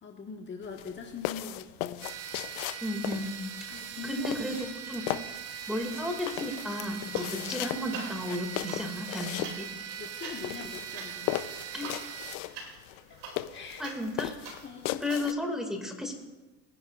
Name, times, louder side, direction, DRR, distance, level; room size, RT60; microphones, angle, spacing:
voice 1, 0.0-2.1 3.7-4.5 10.0-12.1 13.1-13.2 13.5-13.9 14.6-15.1, left 6 dB, 30° left, 1 dB, 1.4 m, -43 dB
sound 1, 0.6-15.3, left 15 dB, 75° left, 0.7 m, -37 dB
sound 2, 2.0-12.4, right 8 dB, 45° right, 1.0 m, -41 dB
voice 2, 2.8-3.4 4.0-4.6 4.9-5.0 5.7-9.7 11.7-11.9 13.8-14.3 15.0-16.1, left 1 dB, ahead, 3 dB, 2.1 m, -33 dB
sound 3, 6.3-7.5 7.8-15.3, right 4 dB, 85° right, 2.7 m, -46 dB
22.0 x 10.0 x 2.4 m, 1.2 s
supercardioid pair, 110°, 35 cm